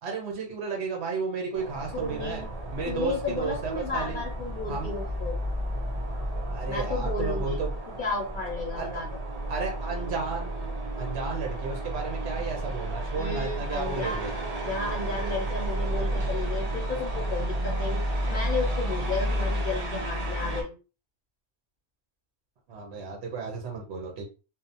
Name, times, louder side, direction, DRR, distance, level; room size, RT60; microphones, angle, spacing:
voice 1, 0.0-2.4 2.7-4.2 4.7-4.9 6.5-7.7 8.7-8.9 9.5-10.7 11.0-14.4 22.7-24.3, right 4 dB, 75° right, 1 dB, 1.0 m, -33 dB
sound 1, 1.5-20.6, right 1 dB, 45° right, 0.6 m, -31 dB
voice 2, 1.9-2.5 2.9-5.4 6.7-7.6 8.0-9.2 13.1-14.3 14.6-18.0 18.3-20.7, left 3 dB, 55° left, -1 dB, 0.7 m, -33 dB
2.7 x 2.0 x 2.6 m, 0.33 s
omnidirectional pair, 1.1 m